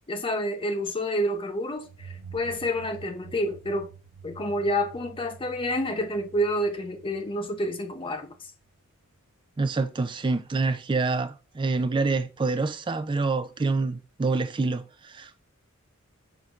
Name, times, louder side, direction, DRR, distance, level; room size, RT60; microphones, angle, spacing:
voice 1, 0.1-3.9 4.2-8.5, equal, 25° left, 0.6 m, -29 dB
sound 1, 1.8-8.4, right 5 dB, 75° right, 0.8 m, -48 dB
voice 2, 9.6-15.4, right 3 dB, 20° right, 0.3 m, -27 dB
5.9 x 3.8 x 2.3 m
head